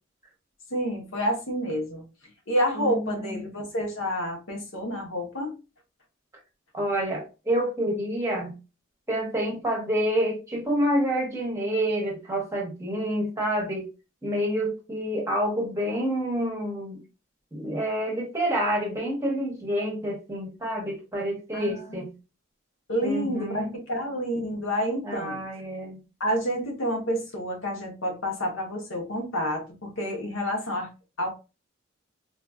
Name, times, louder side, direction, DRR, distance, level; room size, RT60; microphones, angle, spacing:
voice 1, 0.7-2.0 2.5-5.6 21.5-22.0 22.9-25.4 26.2-30.9 31.2-31.3, equal, 80° left, 2 dB, 1.2 m, -29 dB
voice 2, 2.8-3.4 6.7-8.5 9.1-13.9 14.2-17.0 17.5-22.1 23.0-23.7 25.0-26.0, equal, 15° right, -1 dB, 0.8 m, -28 dB
3.9 x 2.5 x 2.4 m, 0.30 s
head